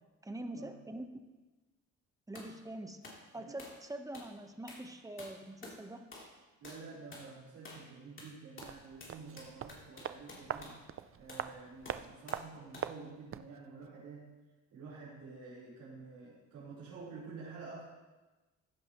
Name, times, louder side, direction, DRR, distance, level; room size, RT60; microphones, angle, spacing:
voice 1, 0.2-1.1 2.3-3.0 3.3-6.1, right 1 dB, 10° right, 6 dB, 1.2 m, -44 dB
sound 1, 2.4-2.5 3.0-3.2 3.6-3.8 4.1-4.3 4.7-4.9 5.2-5.8 6.1-6.4 6.6-6.9 7.1-7.3 7.7-7.9 8.2-10.8 11.3-11.5 11.9-12.5 12.7-13.0, left 2 dB, 40° left, 3.4 m, -51 dB
voice 2, 6.6-10.8 11.2-14.3 14.7-17.8, right 4 dB, 75° right, -9 dB, 4.2 m, -49 dB
sound 2, 8.6-13.6 13.8-13.9, right 9 dB, 45° right, 0.5 m, -43 dB
15.5 x 11.0 x 3.1 m, 1.2 s
cardioid pair, 90°, 30 cm